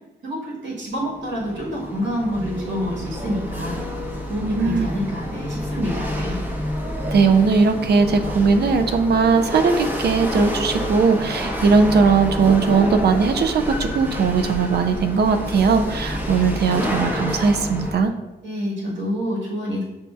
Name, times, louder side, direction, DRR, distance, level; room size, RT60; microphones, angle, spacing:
voice 1, 0.2-3.8 4.3-6.4 18.4-19.8, equal, 80° right, -4 dB, 1.4 m, -27 dB
Chatter / Hiss / Rattle, 1.0-17.9, equal, 10° right, 0.8 m, -28 dB
voice 2, 4.6-4.9 7.1-18.1, right 5 dB, 60° right, 8 dB, 0.5 m, -19 dB
6.7 x 2.6 x 2.4 m, 1.0 s
cardioid pair, 80°, 19 cm